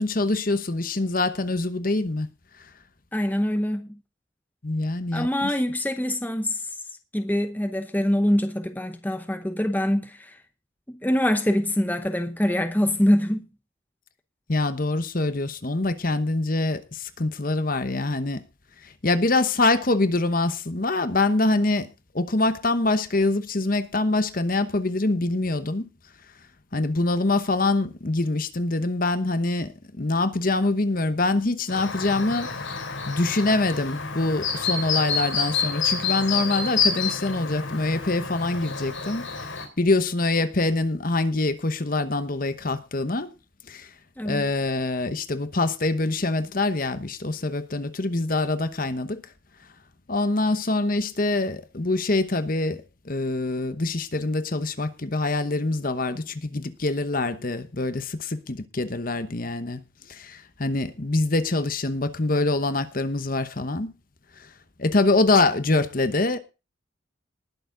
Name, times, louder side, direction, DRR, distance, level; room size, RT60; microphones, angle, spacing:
voice 1, 0.0-2.3 4.6-5.5 14.5-18.4 18.8-21.9 22.1-25.8 26.7-32.5 33.1-39.3 39.8-43.3 43.7-43.9 44.2-49.2 50.1-59.8 60.1-63.9 64.8-66.4, left 2 dB, 45° left, 1.0 m, -24 dB
voice 2, 3.1-4.0 5.1-6.6 7.1-10.4 10.9-13.5 44.2-44.4, left 1 dB, 10° left, 0.8 m, -24 dB
Chirp tweet, 31.7-39.7, left 5 dB, 70° left, 4.0 m, -28 dB
20.0 x 7.0 x 3.8 m
head